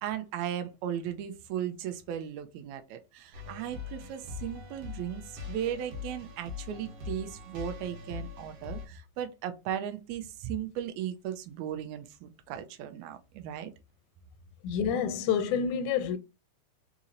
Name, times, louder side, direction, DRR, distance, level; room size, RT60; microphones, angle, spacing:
voice 1, 0.0-13.7, right 10 dB, 80° right, 1.8 m, -36 dB
sound 1, 3.3-8.9, left 5 dB, 60° right, 1.9 m, -42 dB
voice 2, 14.6-16.2, left 7 dB, 85° left, 1.9 m, -28 dB
4.9 x 2.8 x 2.6 m
omnidirectional pair, 3.4 m